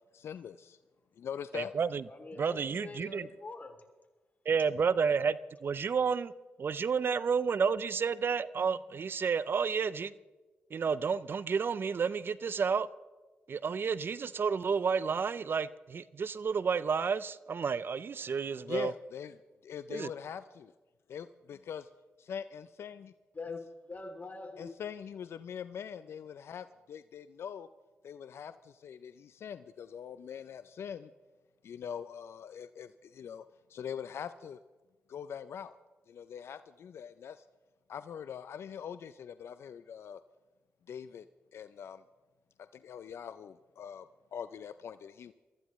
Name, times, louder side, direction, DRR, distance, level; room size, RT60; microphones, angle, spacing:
voice 1, 0.1-0.8 1.2-1.7 18.7-19.4 19.6-20.7 21.1-21.8 22.3-23.1 23.5-23.6 24.6-27.7 28.0-31.1 31.6-33.4 33.7-34.6 35.1-35.7 36.1-37.5 37.9-40.2 40.9-41.3 41.5-42.0 42.7-45.3, left 8 dB, 70° left, 0.4 m, -43 dB
voice 2, 1.5-2.0 2.4-3.3 4.5-6.3 6.6-10.1 10.7-12.9 13.5-18.9 19.9-20.1, right 6 dB, 55° right, 0.5 m, -31 dB
voice 3, 2.1-3.8 23.3-24.7, left 3 dB, 40° left, 2.8 m, -44 dB
22.5 x 14.5 x 3.1 m
supercardioid pair, 55°, 4 cm